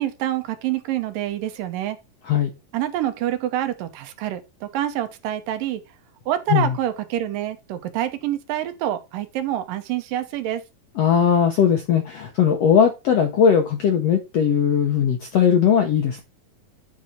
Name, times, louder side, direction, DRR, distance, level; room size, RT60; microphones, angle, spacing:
voice 1, 0.0-2.0 2.7-5.8 6.3-10.6, right 12 dB, 75° right, 2.5 m, -26 dB
voice 2, 11.0-16.2, left 7 dB, 70° left, 1.5 m, -19 dB
10.0 x 4.8 x 4.2 m
omnidirectional pair, 4.0 m